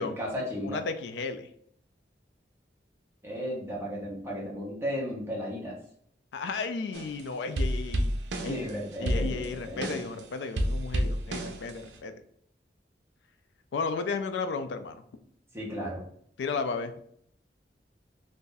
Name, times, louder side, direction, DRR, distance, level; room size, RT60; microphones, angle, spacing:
voice 1, 0.0-0.8 3.2-5.8 8.4-9.9 15.5-16.0, equal, 15° right, -4 dB, 0.9 m, -34 dB
voice 2, 0.6-1.5 6.3-8.1 8.4-8.6 9.0-12.1 13.7-15.0 16.4-16.9, left 4 dB, 85° left, 9 dB, 0.4 m, -33 dB
sound 1, 6.9-7.2 7.6-10.2 10.6-11.9, equal, 85° right, 0.5 m, -30 dB
2.6 x 2.6 x 3.7 m, 0.66 s
head